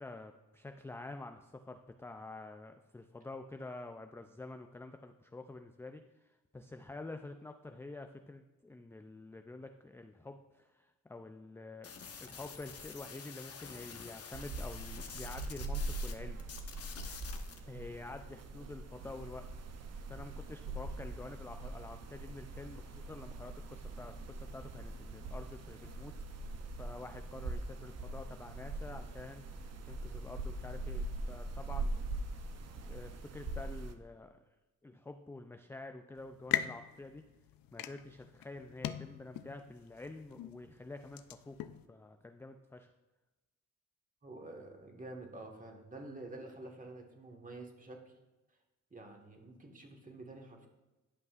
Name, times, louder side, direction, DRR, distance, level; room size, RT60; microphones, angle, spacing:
voice 1, 0.0-16.4 17.7-19.5 20.1-32.1 32.9-34.5 34.8-37.2 37.7-42.9, left 2 dB, 10° left, 6 dB, 0.3 m, -48 dB
sound 1, 11.8-16.1 16.4-17.6, left 6 dB, 45° left, 0.9 m, -48 dB
sound 2, 14.3-33.9, right 2 dB, 50° right, 0.7 m, -42 dB
sound 3, 36.2-41.8, left 11 dB, 80° left, 0.5 m, -41 dB
voice 2, 44.2-48.2 48.9-50.7, right 2 dB, 25° right, 2 dB, 1.4 m, -49 dB
12.0 x 5.4 x 2.4 m, 1.1 s
cardioid pair, 85°, 34 cm